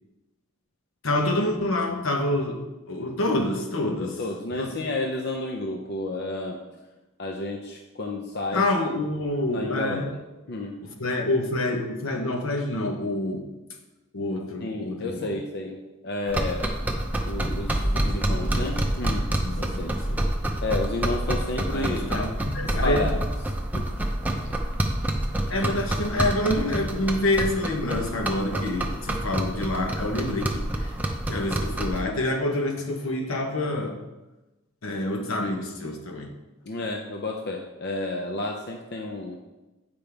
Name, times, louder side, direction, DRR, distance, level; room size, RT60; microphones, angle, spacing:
voice 1, 1.0-2.6 2.9-4.2 4.5-4.7 8.5-10.1 10.8-13.4 14.1-15.4 17.8-18.7 19.4-20.2 21.7-23.1 25.5-30.9 31.3-34.0 34.8-36.3, left 1 dB, 80° left, 3 dB, 1.1 m, -27 dB
voice 2, 4.0-6.6 7.2-8.6 9.5-10.2 10.5-10.7 14.6-15.8 16.0-16.7 17.2-19.2 19.5-19.9 20.6-22.1 22.8-23.2 23.7-23.9 36.7-39.4, left 2 dB, 55° left, 1 dB, 0.6 m, -31 dB
sound 1, 16.3-32.0, right 1 dB, 10° right, 0.6 m, -28 dB
8.7 x 5.2 x 3.4 m, 1.1 s
head